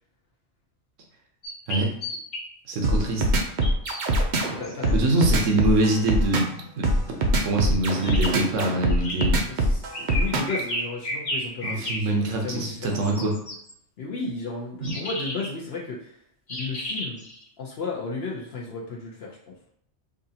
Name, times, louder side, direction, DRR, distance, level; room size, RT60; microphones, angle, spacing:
sound 1, 1.4-2.4 3.6-4.0 4.6-4.9 8.0-8.3 8.9-9.3 9.9-12.0 12.8-13.7 14.8-15.5 16.5-17.4, left 1 dB, 35° left, 0.6 m, -32 dB
voice 1, 2.7-3.2 4.9-7.0 7.4-9.4 11.6-13.3 14.8-15.0, right 2 dB, 85° right, 1 dB, 1.2 m, -24 dB
sound 2, 2.8-10.6, right 1 dB, 55° right, 0.6 m, -22 dB
voice 2, 4.6-5.3 9.5-13.4 14.0-16.2 16.5-17.2 17.6-19.4, left 3 dB, 60° left, -3 dB, 0.9 m, -34 dB
4.8 x 2.5 x 2.8 m, 0.67 s
omnidirectional pair, 1.3 m